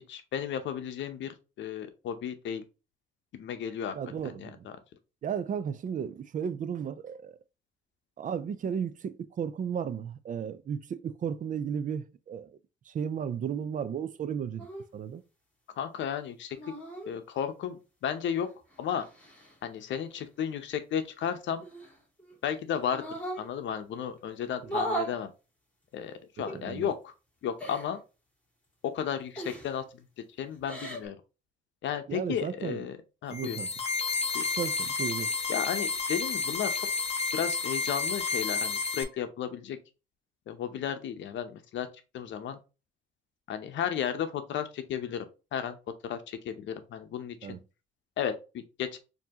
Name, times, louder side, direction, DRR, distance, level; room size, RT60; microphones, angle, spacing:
voice 1, 0.1-2.6 3.3-4.0 4.2-4.7 15.8-16.6 17.1-18.5 18.8-19.1 19.6-21.6 22.4-23.0 23.4-25.3 25.9-27.1 27.4-28.0 28.8-30.0 30.4-31.2 31.8-33.0 33.2-33.6 34.3-34.5 35.5-36.9 37.3-39.8 40.5-41.9 42.1-42.6 43.5-45.8 46.0-47.6 48.2-49.0, left 8 dB, 70° left, 0.7 m, -34 dB
voice 2, 3.9-4.7 5.2-7.4 8.2-12.5 12.9-14.7 14.9-15.2 24.6-24.7 26.5-26.9 32.1-32.8 33.3-33.7 34.6-35.3 47.4-47.6, right 7 dB, 40° right, 0.4 m, -34 dB
sound 1, 14.6-14.8 16.5-17.1 18.4-19.5 21.6-22.4 22.9-23.5 24.6-25.1 26.4-26.6 27.6-27.9 29.4-29.8 30.5-31.1, right 1 dB, 5° left, 2.0 m, -37 dB
sound 2, 33.3-39.0, left 4 dB, 30° left, 0.8 m, -31 dB
4.4 x 2.8 x 2.8 m
cardioid pair, 90°, 20 cm